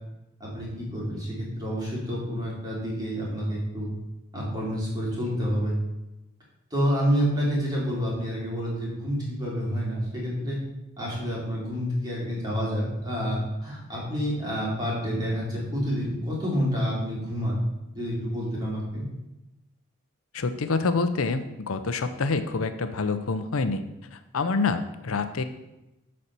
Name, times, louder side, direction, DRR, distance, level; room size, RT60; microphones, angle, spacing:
voice 1, 0.4-3.9 4.3-5.8 6.7-10.6 11.0-17.6 17.9-19.1, equal, 20° right, -6 dB, 3.1 m, -28 dB
voice 2, 20.3-23.8 24.1-25.4, left 4 dB, 85° left, 10 dB, 0.6 m, -27 dB
8.5 x 4.4 x 6.7 m, 0.95 s
head